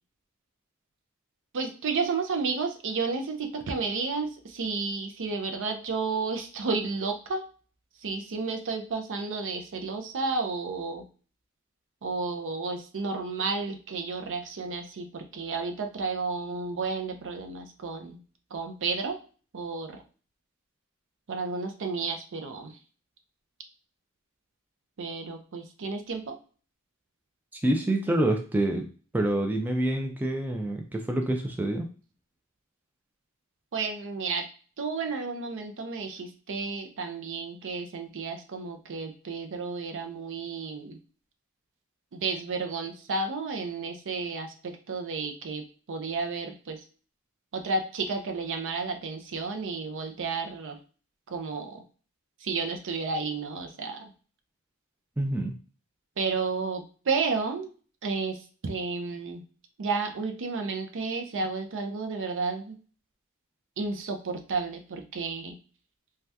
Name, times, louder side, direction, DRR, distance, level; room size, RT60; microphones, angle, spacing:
voice 1, 1.5-7.4 8.0-11.1 12.0-18.2 18.5-19.2 19.5-20.0 21.3-22.8 25.0-26.3 33.7-34.5 34.8-41.0 42.1-46.8 47.5-50.8 51.3-51.8 52.4-54.1 56.2-57.7 58.0-59.4 59.8-62.8 63.8-65.6, right 4 dB, 60° right, 6 dB, 0.5 m, -32 dB
voice 2, 27.6-28.9 29.1-31.9 55.2-55.5, right 1 dB, 10° right, 2 dB, 0.3 m, -27 dB
2.7 x 2.3 x 3.3 m, 0.38 s
head